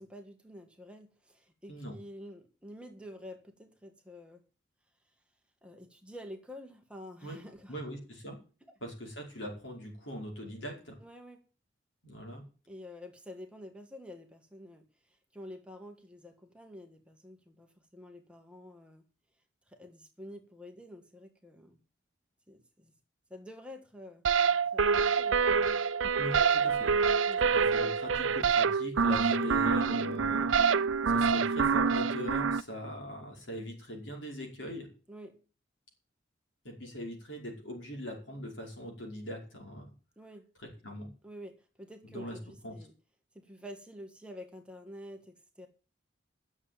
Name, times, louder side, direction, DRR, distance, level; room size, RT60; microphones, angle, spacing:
voice 1, 0.0-4.4 5.6-7.8 8.6-8.8 11.0-11.4 12.7-19.0 19.7-21.8 22.5-22.9 23.3-24.2 24.7-25.7 26.0-26.2 27.3-27.4 30.3-30.5 35.1-35.4 40.2-40.5 41.2-42.9 43.3-45.7, equal, 5° right, 3 dB, 1.5 m, -49 dB
voice 2, 7.7-8.4 8.8-11.0 12.0-12.4 26.2-26.9 27.5-30.5 31.1-34.9 36.7-39.9 40.8-41.1 42.1-42.4 42.6-42.7, equal, 75° left, 0 dB, 5.2 m, -41 dB
sound 1, 24.2-32.6, right 5 dB, 85° right, 0.6 m, -26 dB
11.0 x 7.3 x 8.7 m, 0.36 s
head